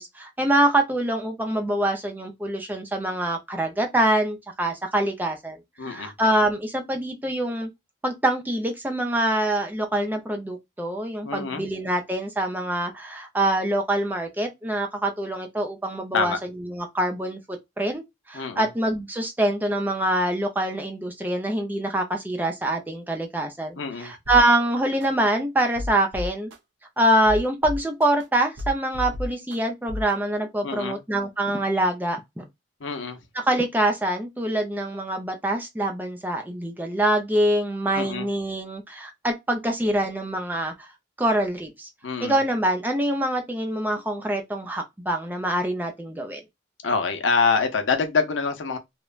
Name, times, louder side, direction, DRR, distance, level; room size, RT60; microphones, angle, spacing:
voice 1, 0.0-5.6 5.8-7.7 8.0-18.0 18.3-26.5 27.0-32.5 33.3-40.9 41.2-41.9 42.2-46.4, right 1 dB, 10° right, 0.4 m, -25 dB
voice 2, 5.8-6.1 11.2-11.6 16.1-16.4 18.3-18.7 23.8-24.1 30.6-31.0 32.8-33.2 38.0-38.3 42.0-42.3 46.8-48.8, left 5 dB, 80° left, 0.6 m, -25 dB
sound 1, 24.3-24.4 25.0-25.1 25.6-26.6 27.1-28.2 28.6-29.6 29.9-30.1, left 1 dB, 70° right, 0.6 m, -31 dB
3.0 x 2.1 x 2.2 m
head